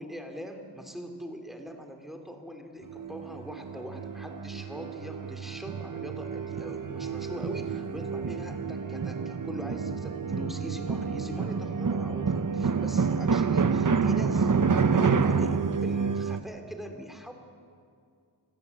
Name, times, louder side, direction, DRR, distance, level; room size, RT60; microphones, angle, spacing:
voice 1, 0.0-17.3, equal, ahead, 4 dB, 3.0 m, -42 dB
sound 1, 2.8-16.4, right 5 dB, 45° right, 0.9 m, -28 dB
26.0 x 16.0 x 8.3 m, 2.3 s
wide cardioid pair, 65°, 44 cm